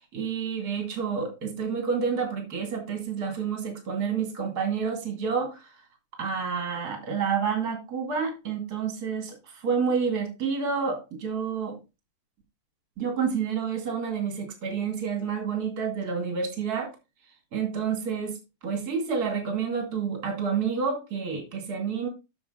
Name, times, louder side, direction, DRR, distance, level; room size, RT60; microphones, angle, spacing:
voice 1, 0.1-5.7 6.2-11.8 13.0-16.9 17.5-18.4 18.6-22.1, right 6 dB, 30° right, 3 dB, 2.2 m, -29 dB
7.0 x 7.0 x 3.8 m, 0.27 s
omnidirectional pair, 4.1 m